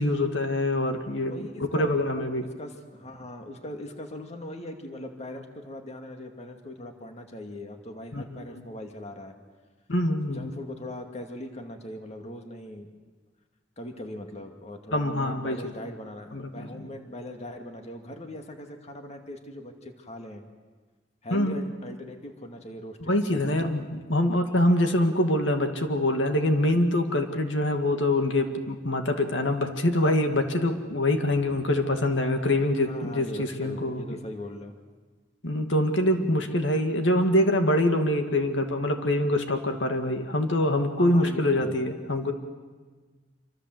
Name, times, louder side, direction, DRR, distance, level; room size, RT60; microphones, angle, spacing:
voice 1, 0.0-1.3 1.6-2.5 8.1-8.2 9.9-10.5 14.9-15.6 16.3-16.9 21.3-21.6 23.0-23.8 24.1-34.0 35.4-42.3, left 1 dB, 80° left, 5 dB, 2.2 m, -24 dB
voice 2, 1.2-2.0 2.6-9.3 10.3-12.9 13.8-20.4 21.2-23.7 31.5-31.6 32.8-34.8 36.2-36.4 41.0-41.8, left 1 dB, 35° left, 4 dB, 2.4 m, -40 dB
27.0 x 25.5 x 8.0 m, 1.4 s
head